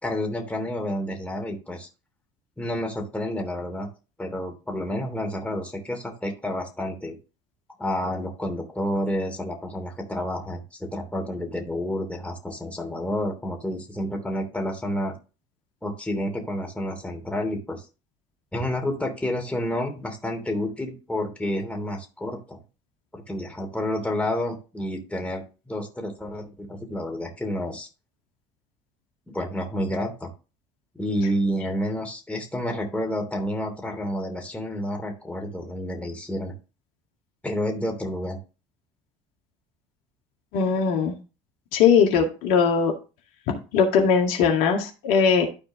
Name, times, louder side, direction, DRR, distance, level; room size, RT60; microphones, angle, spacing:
voice 1, 0.0-1.9 2.6-3.9 4.2-7.2 7.8-15.1 15.8-17.8 18.5-22.6 23.1-27.9 29.3-30.3 30.9-36.5 37.4-38.4, left 1 dB, 10° left, 1 dB, 3.0 m, -29 dB
voice 2, 40.5-41.2 41.7-42.9 43.7-45.5, left 6 dB, 65° left, 1 dB, 2.0 m, -20 dB
12.5 x 4.4 x 3.7 m, 0.32 s
hypercardioid pair, 70°, 16 cm